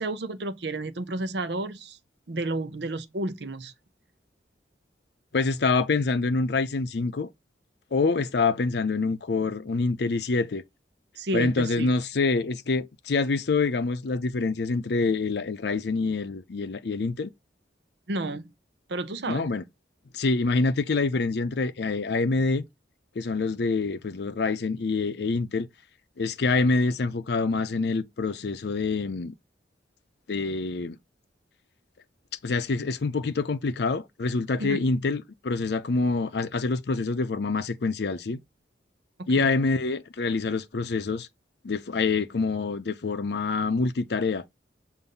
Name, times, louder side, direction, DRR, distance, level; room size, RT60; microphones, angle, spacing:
voice 1, 0.0-2.0 2.3-3.7 11.2-12.0 18.1-18.5 18.9-19.5 34.6-34.9 39.2-39.5, right 2 dB, 65° right, 0.7 m, -31 dB
voice 2, 5.3-7.3 7.9-10.6 11.3-17.3 19.3-19.6 20.1-22.6 23.2-25.7 26.2-29.3 30.3-31.0 32.4-38.4 39.3-41.3 41.6-44.4, left 3 dB, 60° left, 0.5 m, -26 dB
6.7 x 2.6 x 5.4 m
head